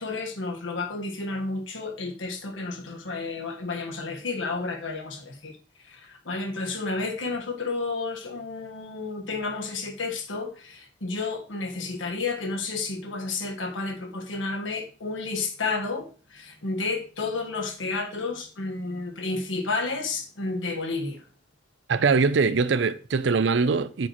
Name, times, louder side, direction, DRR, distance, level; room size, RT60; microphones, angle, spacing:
voice 1, 0.0-5.6 5.8-21.2, left 3 dB, 85° left, 1.5 m, -31 dB
voice 2, 21.9-24.1, right 4 dB, 65° right, 0.5 m, -22 dB
8.9 x 6.3 x 3.1 m
head